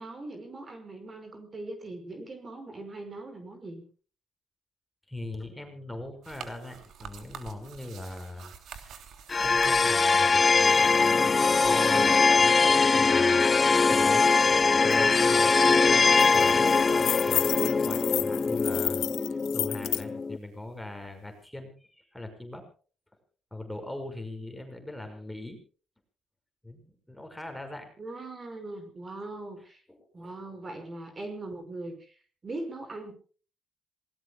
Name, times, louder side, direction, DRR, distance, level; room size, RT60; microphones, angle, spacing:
voice 1, 0.0-3.8 28.0-29.8 30.1-32.2 32.4-33.1, right 2 dB, 35° right, 6 dB, 5.6 m, -40 dB
voice 2, 5.1-9.0 9.4-16.7 16.9-22.6 23.5-25.6 26.6-27.9 29.9-30.3, left 1 dB, 5° left, 5 dB, 5.8 m, -41 dB
sound 1, 6.2-11.7, right 7 dB, 75° right, 3.2 m, -47 dB
sound 2, 9.3-20.4, left 4 dB, 30° left, 0.6 m, -22 dB
sound 3, 14.9-15.0 15.3-15.5 15.9-20.0, left 13 dB, 85° left, 0.7 m, -32 dB
27.0 x 19.0 x 2.4 m, 0.40 s
cardioid pair, 90°, 0 cm